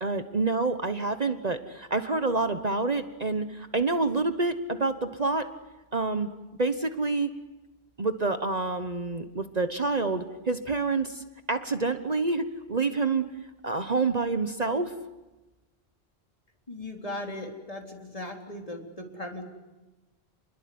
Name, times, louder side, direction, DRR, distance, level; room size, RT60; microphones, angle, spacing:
voice 1, 0.0-5.5 5.9-6.3 6.6-7.3 8.0-13.2 13.6-14.9, right 3 dB, 40° right, 9 dB, 1.2 m, -27 dB
voice 2, 16.7-19.4, left 1 dB, 35° left, 2 dB, 3.9 m, -38 dB
29.5 x 21.5 x 9.5 m, 1.1 s
omnidirectional pair, 1.0 m